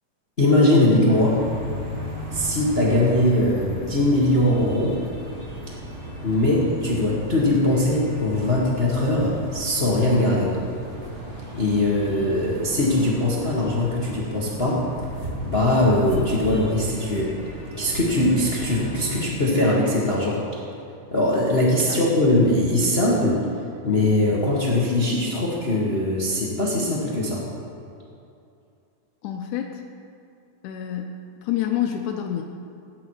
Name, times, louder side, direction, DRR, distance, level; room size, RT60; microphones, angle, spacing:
voice 1, 0.4-1.4 2.3-5.0 6.2-10.5 11.5-14.8 15.4-17.3 17.8-20.4 21.1-23.4 23.8-27.4, left 1 dB, 30° left, -4 dB, 1.2 m, -21 dB
sound 1, 1.1-19.2, equal, 30° right, 1.5 m, -35 dB
voice 2, 29.2-29.8 30.6-32.4, left 10 dB, 80° left, 3 dB, 2.2 m, -28 dB
18.0 x 9.7 x 4.8 m, 2.6 s
omnidirectional pair, 3.6 m